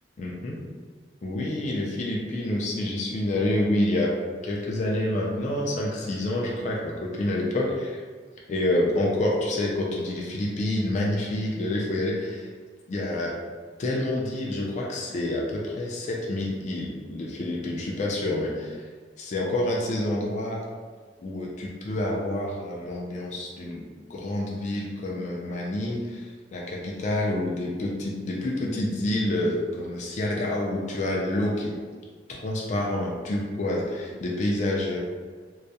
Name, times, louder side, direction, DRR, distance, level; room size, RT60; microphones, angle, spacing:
voice 1, 0.2-0.6 1.2-4.2 4.4-8.0 8.5-12.5 12.9-13.4 13.8-18.9 19.2-20.6 21.2-23.8 24.1-31.8 32.3-35.0, left 1 dB, 40° left, -2 dB, 0.3 m, -28 dB
2.2 x 2.0 x 2.7 m, 1.5 s
head